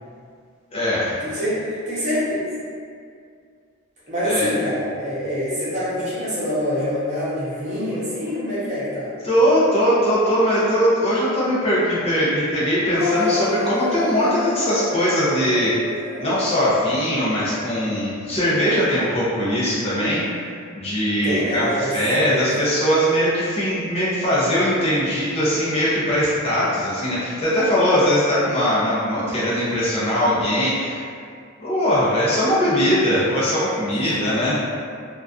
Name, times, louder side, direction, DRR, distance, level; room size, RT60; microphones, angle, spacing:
voice 1, 0.7-1.4 4.2-4.5 9.2-15.9 16.2-31.0 31.6-34.6, equal, 30° left, -9 dB, 0.5 m, -20 dB
voice 2, 1.2-2.4 4.1-9.1 21.0-21.9 22.2-22.4, equal, 35° right, -10 dB, 0.8 m, -25 dB
sound 1, 12.9-17.8, left 3 dB, 65° left, 0.7 m, -28 dB
2.4 x 2.2 x 2.3 m, 2.2 s
head